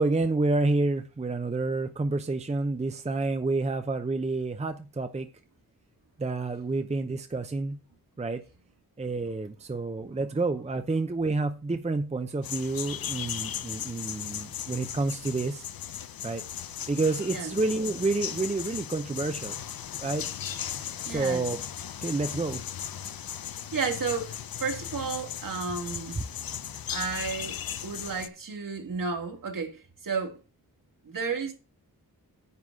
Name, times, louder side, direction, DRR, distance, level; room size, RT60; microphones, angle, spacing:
voice 1, 0.0-5.3 6.2-7.8 8.2-8.4 9.0-15.7 16.2-16.4 16.9-19.5 20.0-20.3 21.0-21.6 22.0-22.6, right 3 dB, 20° right, 0.7 m, -29 dB
sound 1, 12.4-28.3, left 9 dB, 65° left, 0.7 m, -37 dB
voice 2, 21.1-21.5 23.5-26.2 26.9-30.4 31.0-31.5, right 5 dB, 60° right, 2.4 m, -33 dB
9.6 x 4.0 x 7.4 m
wide cardioid pair, 140°, 37 cm